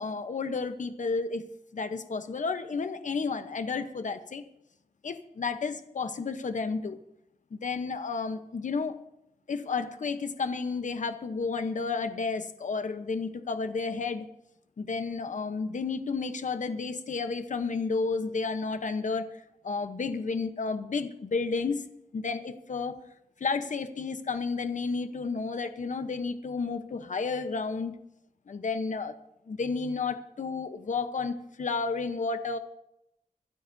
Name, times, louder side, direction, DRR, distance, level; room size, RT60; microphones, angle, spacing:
voice 1, 0.0-1.4 1.7-4.4 5.0-7.0 7.5-9.0 9.5-14.3 14.8-19.3 19.6-21.8 22.1-23.0 23.4-27.9 28.5-29.1 29.5-32.6, left 4 dB, 60° left, 9 dB, 0.9 m, -31 dB
25.0 x 12.5 x 2.7 m, 0.82 s
wide cardioid pair, 130°, 15 cm